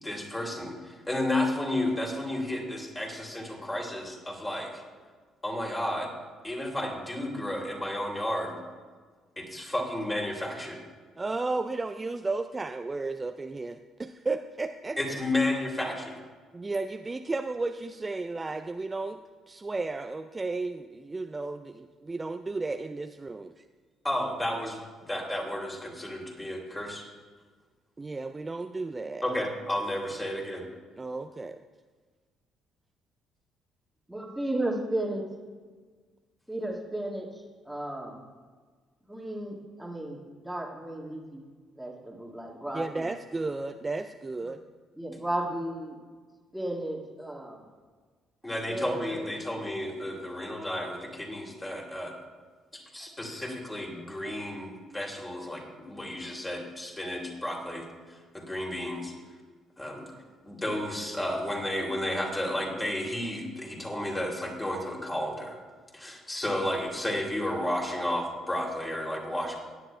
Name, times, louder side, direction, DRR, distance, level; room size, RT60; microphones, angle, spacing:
voice 1, 0.0-4.8 5.4-6.1 6.4-8.6 9.4-10.8 15.0-16.1 24.0-27.0 29.2-30.7 48.4-52.1 52.7-59.1 59.8-60.1 60.5-65.6 65.9-69.6, left 1 dB, 15° left, -1 dB, 2.8 m, -32 dB
voice 2, 11.2-15.0 16.5-19.2 19.5-23.6 28.0-29.2 31.0-31.6 42.7-44.6, right 3 dB, 25° right, 7 dB, 0.4 m, -33 dB
voice 3, 34.1-35.3 36.5-38.3 39.1-41.4 41.7-43.1 44.4-44.6 45.0-46.0 46.5-47.6 48.7-49.3, right 1 dB, 5° right, -1 dB, 1.8 m, -34 dB
17.0 x 9.9 x 2.2 m, 1.5 s
figure-of-eight pair, 45°, 0 cm